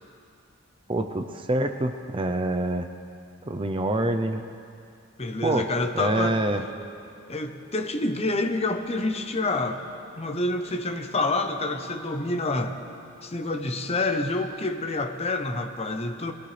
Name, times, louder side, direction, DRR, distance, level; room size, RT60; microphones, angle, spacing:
voice 1, 0.9-2.9 3.4-4.4 5.4-5.7 5.9-6.6, right 2 dB, 25° right, 6 dB, 0.5 m, -26 dB
voice 2, 5.2-6.4 7.3-9.8 10.2-12.8 13.2-16.3, left 2 dB, 30° left, 6 dB, 0.8 m, -27 dB
sound 1, 6.1-14.1, right 1 dB, 55° right, 3.0 m, -50 dB
22.0 x 17.5 x 3.3 m, 2.5 s
head